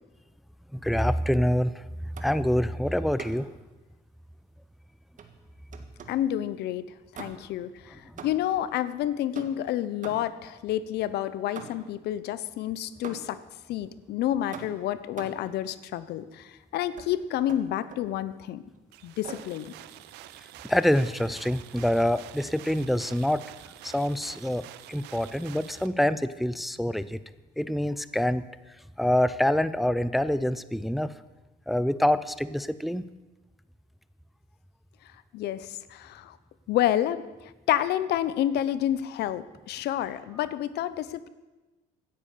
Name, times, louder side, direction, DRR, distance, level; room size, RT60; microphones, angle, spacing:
voice 1, 0.7-1.7 2.2-3.5 20.7-23.4 23.8-27.2 27.6-28.4 29.0-31.1 31.7-33.0, left 1 dB, ahead, 15 dB, 0.5 m, -26 dB
sound 1, 2.1-2.5 3.2-3.6 5.2-6.3 7.1-7.7 8.2-8.6 9.3-10.5 11.6-12.0 13.0-13.5 14.5-15.5 17.0-17.1 17.5-18.1 19.2-19.6, right 6 dB, 50° right, 1.7 m, -44 dB
voice 2, 6.1-6.8 7.1-13.4 13.7-18.6 19.0-19.7 35.3-36.4 36.7-37.2 37.7-41.3, left 12 dB, 75° left, 15 dB, 0.9 m, -29 dB
sound 2, 18.9-25.9, right 14 dB, 90° right, 0.7 m, -47 dB
16.5 x 10.0 x 6.7 m, 1.1 s
cardioid pair, 110°, 17 cm